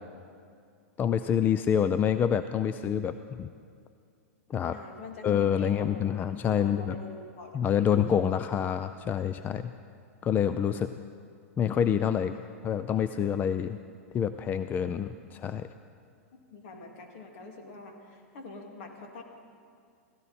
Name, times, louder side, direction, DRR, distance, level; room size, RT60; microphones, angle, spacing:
voice 1, 1.0-3.5 4.5-4.8 5.2-7.0 7.5-9.7 10.2-10.9 11.6-12.4 12.6-13.8 14.1-15.7, left 8 dB, 25° left, 11 dB, 0.4 m, -27 dB
voice 2, 4.7-5.3 5.6-5.9 6.4-8.0 9.7-9.8 12.4-12.5 15.0-15.1 16.3-19.2, left 3 dB, 60° left, 2 dB, 2.5 m, -46 dB
16.0 x 16.0 x 4.3 m, 2.3 s
hypercardioid pair, 120°, 8 cm